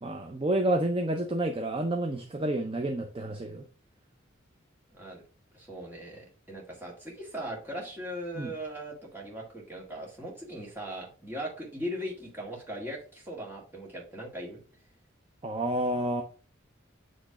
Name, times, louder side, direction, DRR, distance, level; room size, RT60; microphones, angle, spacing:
voice 1, 0.0-3.6 8.4-8.5 15.4-16.2, right 1 dB, 30° right, 0.6 m, -29 dB
voice 2, 4.9-5.2 5.5-14.6, equal, 10° right, 1.9 m, -39 dB
8.1 x 3.2 x 4.9 m
head